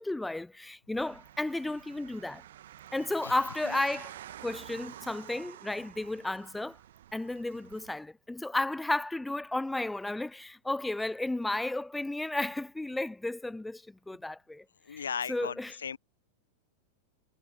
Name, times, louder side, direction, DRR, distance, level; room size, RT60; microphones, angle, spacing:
voice 1, 0.0-2.4 2.9-6.8 7.1-14.6 14.9-15.0 15.3-15.7, left 2 dB, 5° left, 0.6 m, -33 dB
sound 1, 1.0-7.9, right 12 dB, 60° right, 1.6 m, -49 dB
voice 2, 14.8-16.0, left 7 dB, 70° left, 0.7 m, -37 dB
figure-of-eight pair, 90°, 0 cm